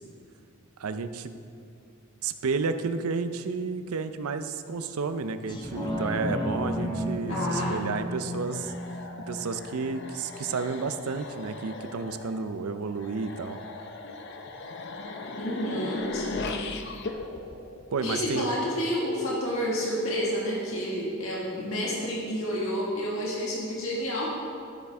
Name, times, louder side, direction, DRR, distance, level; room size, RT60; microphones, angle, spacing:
voice 1, 0.8-1.3 2.2-8.7 9.3-13.6 17.9-18.5, right 4 dB, 80° right, 10 dB, 0.5 m, -31 dB
sound 1, 5.5-10.5 11.0-11.1, left 1 dB, 20° left, 0.9 m, -33 dB
voice 2, 7.3-7.9 15.3-16.6 18.0-24.3, equal, 70° left, -4 dB, 1.7 m, -30 dB
sound 2, 8.3-18.5, left 3 dB, 50° left, 0.6 m, -38 dB
12.0 x 8.2 x 3.5 m, 2.4 s
head